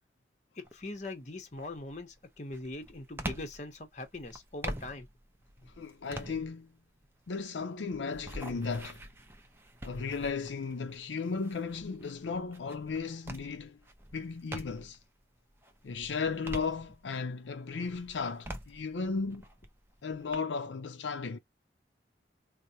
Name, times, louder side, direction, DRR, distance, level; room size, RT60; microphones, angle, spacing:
voice 1, 0.6-5.1, left 2 dB, 40° left, 0.8 m, -42 dB
jump land wood, 0.6-1.0 1.5-15.1 15.5-17.3 17.8-20.4, right 1 dB, 15° right, 0.5 m, -45 dB
voice 2, 5.8-6.7 7.3-9.1 9.8-13.8 14.1-15.0 15.8-19.5 20.0-21.4, left 4 dB, 85° left, 0.5 m, -35 dB
4.6 x 2.1 x 2.7 m
head